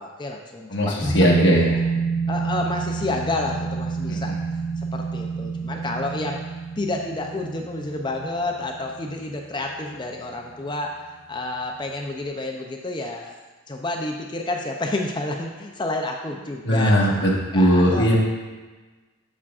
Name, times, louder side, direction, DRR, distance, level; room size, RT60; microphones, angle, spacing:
voice 1, 0.0-1.1 1.4-1.7 2.3-4.4 4.8-6.4 6.8-13.4 13.7-17.2 17.5-18.1, left 2 dB, 20° left, 1 dB, 0.4 m, -30 dB
voice 2, 0.7-1.7 4.1-4.3 16.6-18.1, equal, 60° left, -2 dB, 1.2 m, -19 dB
sound 1, 1.0-10.1 10.4-10.5, right 4 dB, ahead, 1.2 m, -28 dB
7.2 x 7.0 x 2.4 m, 1.3 s
head